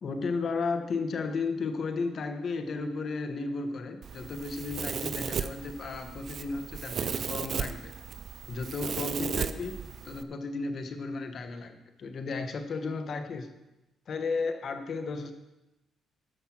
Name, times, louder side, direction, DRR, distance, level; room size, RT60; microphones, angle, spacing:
voice 1, 0.0-7.9 8.5-13.5 14.1-15.3, left 4 dB, 55° left, 7 dB, 1.2 m, -34 dB
Domestic sounds home sounds, 4.0-10.2, right 7 dB, 55° right, 0.5 m, -35 dB
13.0 x 5.6 x 6.1 m, 0.97 s
cardioid pair, 90°, 0 cm